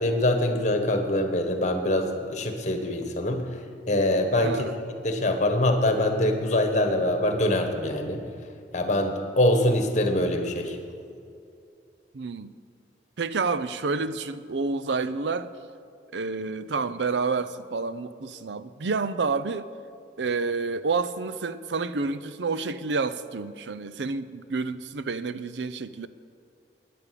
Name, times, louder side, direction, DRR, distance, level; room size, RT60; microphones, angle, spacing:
voice 1, 0.0-3.4 3.9-4.6 5.0-8.2 8.7-10.8, left 1 dB, 40° left, 1.5 m, -24 dB
voice 2, 4.4-4.8 12.1-12.5 13.2-15.5 16.1-19.7 20.2-26.1, right 4 dB, 80° right, 0.6 m, -29 dB
12.0 x 10.0 x 8.4 m
head